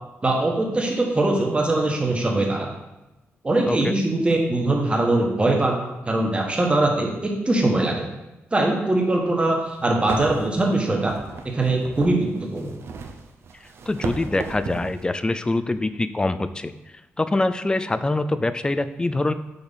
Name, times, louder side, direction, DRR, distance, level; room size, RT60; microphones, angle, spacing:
voice 1, 0.2-2.7 3.4-8.1 8.5-11.1 11.4-12.7, right 2 dB, 25° right, 0 dB, 1.3 m, -22 dB
voice 2, 3.6-4.0 13.9-16.7 17.2-19.3, left 2 dB, 20° left, 12 dB, 0.4 m, -24 dB
sound 1, 9.5-9.6 10.1-15.0, right 4 dB, 65° right, 0.6 m, -35 dB
5.3 x 4.3 x 4.2 m, 0.99 s
cardioid pair, 80°, 5 cm